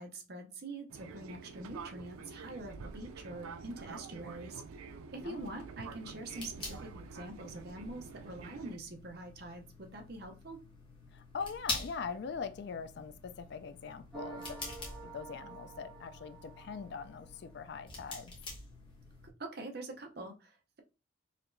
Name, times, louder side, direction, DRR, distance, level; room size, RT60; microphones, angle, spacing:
voice 1, 0.0-4.6 5.1-10.6 19.4-20.8, right 2 dB, 50° right, 0.6 m, -45 dB
Fixed-wing aircraft airplane, 0.9-8.8, right 5 dB, 90° right, 0.4 m, -48 dB
voice 2, 5.2-5.6 11.1-14.6 15.0-18.3, left 5 dB, 55° left, 0.3 m, -42 dB
sound 1, 5.8-19.3, left 2 dB, 25° left, 1.0 m, -46 dB
sound 2, 14.1-17.5, right 4 dB, ahead, 1.7 m, -49 dB
4.3 x 2.9 x 2.6 m
head